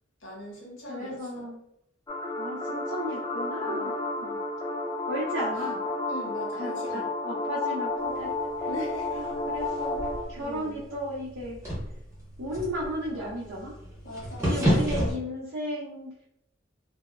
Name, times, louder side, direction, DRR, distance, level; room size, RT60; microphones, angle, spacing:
voice 1, 0.2-1.4 3.6-3.9 6.1-7.1 8.6-9.3 10.4-10.7 14.0-15.1, equal, 75° left, -3 dB, 0.9 m, -40 dB
voice 2, 0.9-1.6 2.4-4.4 5.1-5.8 6.6-8.3 9.1-10.0 10.3-11.6 12.4-13.7 14.4-16.1, equal, 75° right, -6 dB, 0.6 m, -34 dB
sound 1, 2.1-10.2, left 2 dB, 20° left, 0.4 m, -31 dB
sound 2, 8.0-15.1, equal, 15° right, 0.9 m, -32 dB
2.6 x 2.0 x 2.4 m, 0.77 s
head